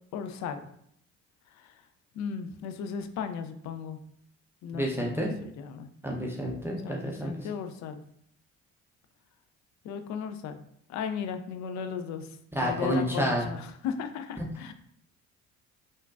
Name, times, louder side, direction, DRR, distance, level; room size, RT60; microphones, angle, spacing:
voice 1, 0.1-0.7 1.6-1.7 2.1-4.0 4.6-5.9 6.8-8.0 9.8-10.6 10.9-12.3 12.6-14.7, left 7 dB, 50° left, 9 dB, 0.5 m, -36 dB
voice 2, 4.7-5.3 6.0-7.5 12.5-13.4, equal, 5° right, -2 dB, 0.5 m, -29 dB
3.6 x 2.5 x 2.3 m, 0.69 s
hypercardioid pair, 60°, 37 cm